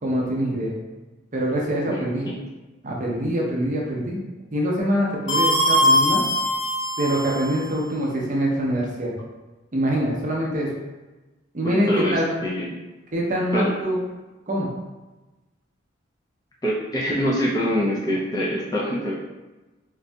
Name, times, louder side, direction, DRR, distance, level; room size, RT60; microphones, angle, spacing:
voice 1, 0.0-0.7 1.3-2.3 2.8-4.2 4.5-6.2 7.0-9.1 9.7-10.7 11.5-12.3 13.1-14.0 14.5-14.7, equal, 40° right, -2 dB, 0.6 m, -24 dB
voice 2, 1.9-2.4 11.6-12.8 13.5-13.7 16.6-19.1, equal, 20° left, -5 dB, 0.4 m, -25 dB
sound 1, 5.3-7.6, equal, 70° left, 0.9 m, -21 dB
3.9 x 2.6 x 2.2 m, 1.1 s
head